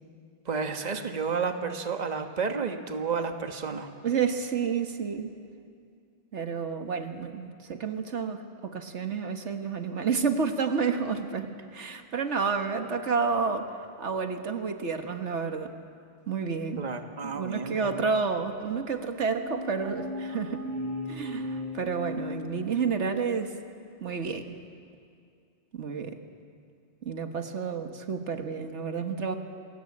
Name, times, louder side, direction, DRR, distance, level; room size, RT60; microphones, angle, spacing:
voice 1, 0.4-3.9 16.8-18.1, right 5 dB, 35° right, 6 dB, 1.4 m, -31 dB
voice 2, 4.0-5.3 6.3-13.7 14.0-15.7 16.3-16.8 17.2-20.6 21.1-23.5 24.0-24.4 25.7-26.2 27.0-29.4, right 5 dB, 75° right, 6 dB, 1.6 m, -30 dB
sound 1, 19.3-23.1, left 1 dB, 15° right, 5.1 m, -37 dB
28.0 x 20.5 x 8.6 m, 2.3 s
omnidirectional pair, 1.2 m